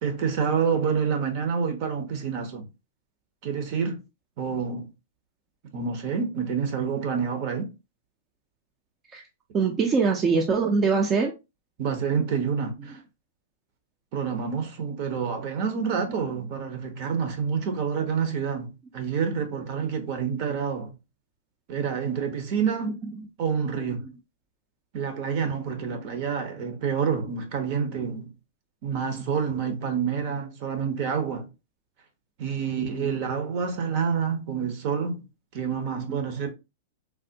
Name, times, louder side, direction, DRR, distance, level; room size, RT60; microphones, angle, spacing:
voice 1, 0.0-2.7 3.4-4.0 4.4-4.9 5.7-7.7 11.8-13.0 14.1-20.9 21.7-22.9 23.4-24.0 24.9-28.3 28.8-31.5 32.4-35.2 35.5-36.5, right 6 dB, 50° right, 0.8 m, -28 dB
voice 2, 9.5-11.3 22.8-22.9 25.2-25.4 33.0-33.1 36.1-36.2, right 5 dB, 25° right, 0.5 m, -23 dB
3.3 x 2.1 x 2.6 m
hypercardioid pair, 120°, 0 cm